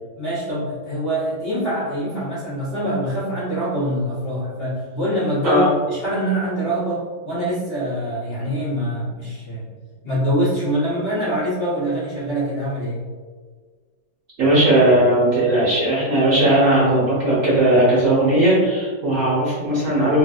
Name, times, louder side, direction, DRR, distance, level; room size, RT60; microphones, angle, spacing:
voice 1, 0.2-9.7 10.0-13.0, equal, 35° left, -12 dB, 1.4 m, -24 dB
voice 2, 14.4-20.2, right 1 dB, 55° right, -8 dB, 1.1 m, -17 dB
3.4 x 2.5 x 2.4 m, 1.5 s
omnidirectional pair, 1.9 m